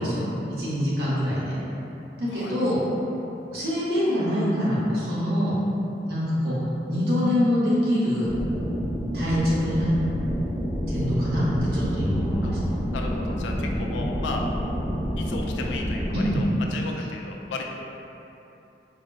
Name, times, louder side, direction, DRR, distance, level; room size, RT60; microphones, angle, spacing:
voice 1, 0.0-1.5 2.2-2.8 3.5-5.5 6.1-6.5 6.9-8.3 9.1-9.9 10.9-11.5 11.7-12.6 16.1-16.4, equal, 60° right, -9 dB, 0.8 m, -24 dB
sound 1, 8.3-16.5, equal, ahead, 0.4 m, -28 dB
voice 2, 12.9-14.4 15.2-17.7, left 3 dB, 90° left, 1 dB, 0.3 m, -35 dB
3.9 x 2.0 x 2.2 m, 2.9 s
head